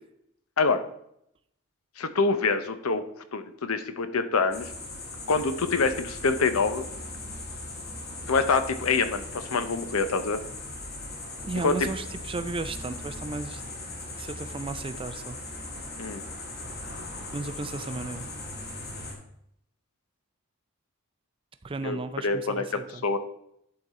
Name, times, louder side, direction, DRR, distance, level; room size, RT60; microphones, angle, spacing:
voice 1, 2.0-3.0 3.3-4.7 5.3-6.8 8.3-10.4 11.6-11.7 16.0-16.2 21.8-22.0 22.2-22.6 23.0-23.2, left 4 dB, 85° left, 10 dB, 0.7 m, -25 dB
sound 1, 4.5-19.1, left 2 dB, 45° left, 1.9 m, -39 dB
voice 2, 11.4-13.6 14.2-15.4 17.3-18.3 21.6-23.0, right 3 dB, 25° right, 10 dB, 0.4 m, -34 dB
11.0 x 3.9 x 4.2 m, 0.74 s
head